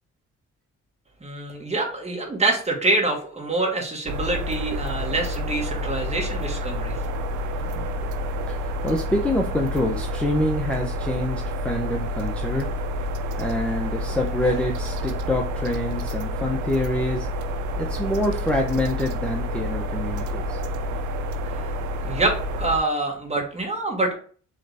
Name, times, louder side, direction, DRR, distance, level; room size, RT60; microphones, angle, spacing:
voice 1, 1.2-7.0 21.5-21.6 22.0-24.2, right 2 dB, 20° right, 1 dB, 1.6 m, -26 dB
sound 1, 4.1-22.8, left 1 dB, 80° right, 0.6 m, -29 dB
voice 2, 8.5-12.7 13.4-17.3 17.8-20.6, left 1 dB, 5° left, 0 dB, 0.7 m, -26 dB
4.0 x 3.2 x 3.3 m, 0.42 s
cardioid pair, 90°, 30 cm